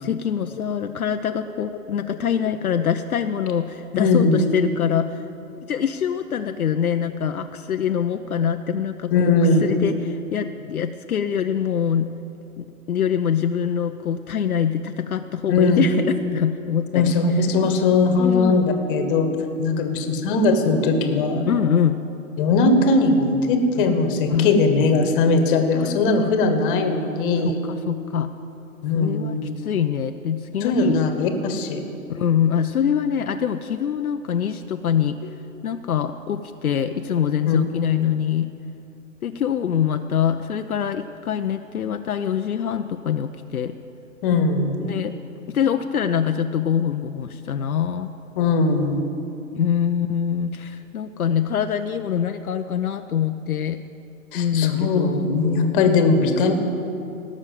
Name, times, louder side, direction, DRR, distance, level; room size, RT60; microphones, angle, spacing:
voice 1, 0.0-5.2 5.7-9.3 9.6-12.1 12.6-17.2 18.2-18.7 21.5-22.0 24.3-24.6 25.7-25.9 27.4-28.3 28.9-31.0 32.1-35.2 35.6-38.5 39.2-43.7 44.8-45.1 45.5-48.1 49.6-53.8 54.3-55.2, left 8 dB, 75° left, 7 dB, 0.6 m, -24 dB
voice 2, 3.9-4.4 9.1-9.8 15.5-15.9 16.9-19.3 19.6-21.5 22.4-27.6 28.8-29.5 30.6-31.9 37.5-37.6 44.2-44.8 48.4-49.0 54.3-56.5, left 3 dB, 35° left, 6 dB, 1.5 m, -19 dB
17.0 x 6.4 x 7.6 m, 2.7 s
figure-of-eight pair, 120°, 43 cm